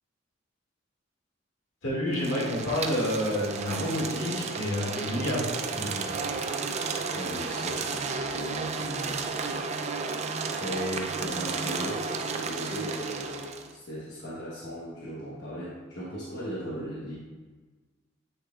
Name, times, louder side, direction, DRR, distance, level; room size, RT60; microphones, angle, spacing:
voice 1, 1.8-6.0, left 1 dB, 75° left, -5 dB, 2.1 m, -29 dB
sound 1, 2.1-13.7, right 4 dB, 35° right, 0.4 m, -33 dB
voice 2, 7.1-9.2 10.5-17.2, equal, 60° left, -7 dB, 1.2 m, -37 dB
8.2 x 6.6 x 2.4 m, 1.3 s
head